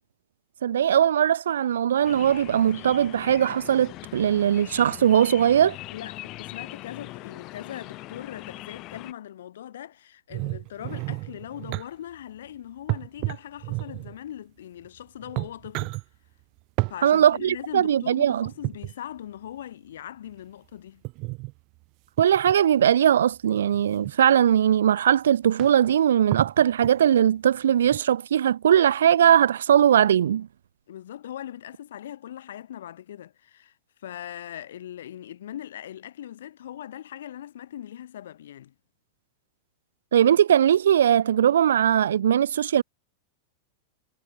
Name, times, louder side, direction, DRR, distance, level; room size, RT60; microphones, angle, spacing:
voice 1, 0.6-5.8 17.0-18.5 22.2-30.5 40.1-42.8, right 9 dB, 65° right, 0.4 m, -20 dB
sound 1, 2.0-9.1, left 19 dB, 40° left, 2.0 m, -41 dB
voice 2, 5.9-16.0 16.9-21.0 30.9-33.7 34.0-38.7, left 11 dB, 60° left, 7.4 m, -40 dB
sound 2, 10.3-11.9 12.9-14.2 14.8-14.9 15.2-16.0 16.8-17.0 18.4-18.9 21.0-21.5 22.2-22.5 23.6-24.1 24.9-25.0 25.2-25.3 25.6-25.9 26.3-27.2 27.9-28.0, right 27 dB, 40° right, 0.9 m, -31 dB
figure-of-eight pair, 90°, 0 cm